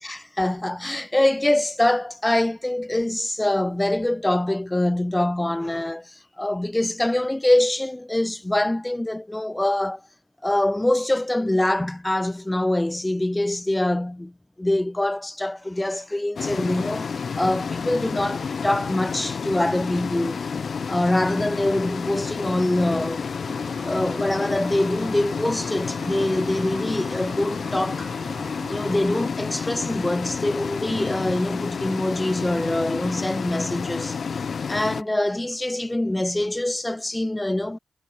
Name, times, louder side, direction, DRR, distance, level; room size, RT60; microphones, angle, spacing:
voice 1, 0.0-10.0 10.4-14.3 14.6-20.4 20.9-23.3 23.8-28.1 28.7-34.2 34.7-37.8, left 1 dB, 15° left, 3.3 m, -24 dB
sound 1, 16.4-35.0, left 5 dB, 70° left, 4.1 m, -30 dB
sound 2, 23.4-29.3, right 6 dB, 75° right, 7.7 m, -44 dB
cardioid pair, 60°, 0 cm